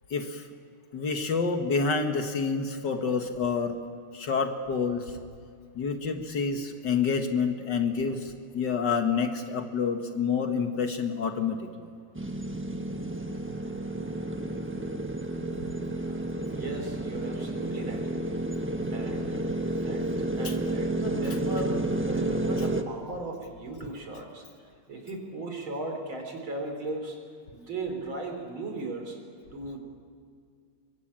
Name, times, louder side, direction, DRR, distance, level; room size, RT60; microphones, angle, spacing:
voice 1, 0.1-0.4 0.9-3.8 4.1-5.2 5.7-11.9 20.4-20.5, left 5 dB, 55° left, 6 dB, 2.0 m, -28 dB
sound 1, 12.1-22.8, right 1 dB, 10° right, 0.7 m, -31 dB
voice 2, 16.5-18.1 18.9-24.5 24.9-27.2 27.5-29.2 29.5-29.8, right 2 dB, 70° right, 3 dB, 4.6 m, -37 dB
23.5 x 22.5 x 8.8 m, 2.2 s
omnidirectional pair, 2.3 m